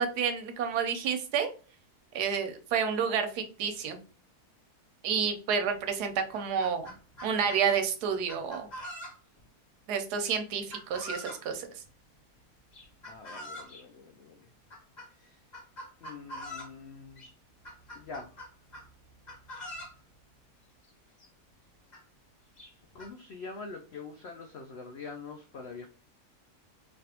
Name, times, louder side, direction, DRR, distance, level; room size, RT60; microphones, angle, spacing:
voice 1, 0.0-1.5 2.1-4.0 5.0-6.9 7.2-8.7 9.9-11.7, right 7 dB, 85° right, 7 dB, 1.2 m, -30 dB
Chicken rooster, 5.7-5.8 6.2-7.6 8.3-9.4 10.7-11.4 12.7-13.8 14.7-15.1 15.5-16.8 17.2-17.3 17.6-18.9 19.2-20.0 20.9-21.0 21.2-21.3 21.9-22.0 22.6-23.1, equal, 35° left, 0.9 m, -43 dB
voice 2, 13.1-14.5 15.2-15.4 16.0-17.3 17.9-18.3 22.9-25.9, left 4 dB, 85° left, 3 dB, 0.5 m, -44 dB
3.2 x 2.5 x 2.7 m, 0.38 s
omnidirectional pair, 1.7 m